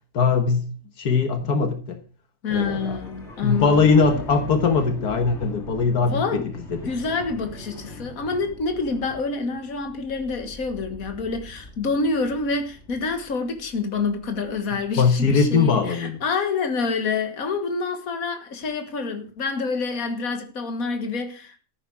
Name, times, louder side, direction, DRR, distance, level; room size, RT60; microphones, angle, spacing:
voice 1, 0.1-0.7 1.0-2.0 2.5-3.0 3.3-6.4 14.7-16.2, left 5 dB, 85° left, 2.0 m, -21 dB
voice 2, 2.4-3.8 6.0-6.5 6.9-21.6, left 4 dB, 65° left, 2.1 m, -27 dB
sound 1, 2.5-15.0, left 1 dB, 45° left, 3.1 m, -41 dB
14.0 x 9.8 x 4.8 m
omnidirectional pair, 1.6 m